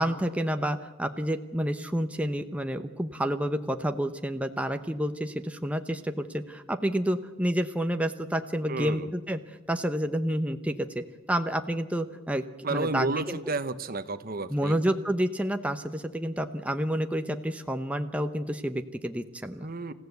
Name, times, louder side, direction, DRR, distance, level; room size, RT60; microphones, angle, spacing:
voice 1, 0.0-9.4 9.7-12.4 12.7-13.4 14.5-19.7, equal, 5° right, 6 dB, 0.8 m, -29 dB
voice 2, 8.7-9.1 12.6-14.7 19.6-19.9, right 3 dB, 50° right, 12 dB, 1.1 m, -31 dB
27.5 x 15.5 x 8.0 m, 1.2 s
head